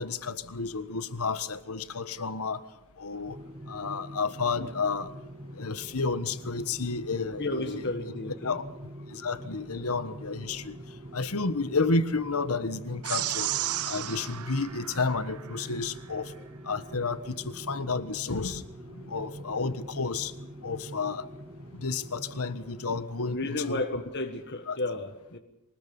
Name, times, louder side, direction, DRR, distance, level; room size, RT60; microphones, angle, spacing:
voice 1, 0.0-2.6 3.0-3.4 3.7-5.1 5.6-7.9 8.4-8.6 9.1-10.7 11.1-13.5 13.9-16.3 16.7-18.6 18.9-20.3 20.6-21.2 21.8-23.8 24.7-24.8, left 4 dB, 75° left, 13 dB, 1.4 m, -31 dB
sound 1, 3.3-23.0, right 1 dB, 25° right, 1.0 m, -45 dB
voice 2, 7.4-8.6 23.3-25.4, left 2 dB, 50° left, 5 dB, 1.7 m, -33 dB
sound 2, 13.0-15.7, right 13 dB, 85° right, 0.9 m, -33 dB
24.0 x 19.5 x 7.1 m, 0.87 s
head